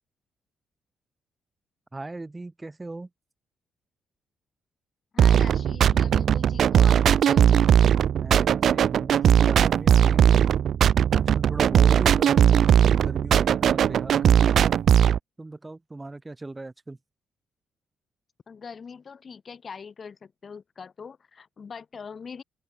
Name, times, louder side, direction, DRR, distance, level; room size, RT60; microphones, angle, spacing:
voice 1, 1.9-3.1 8.1-10.5 11.1-14.7 15.4-17.0, right 2 dB, 20° right, 2.2 m, -38 dB
voice 2, 5.1-7.6 18.5-22.4, left 6 dB, 40° left, 5.4 m, -42 dB
sound 1, 5.2-15.2, right 9 dB, 60° right, 0.7 m, -19 dB
cardioid pair, 90°, 0 cm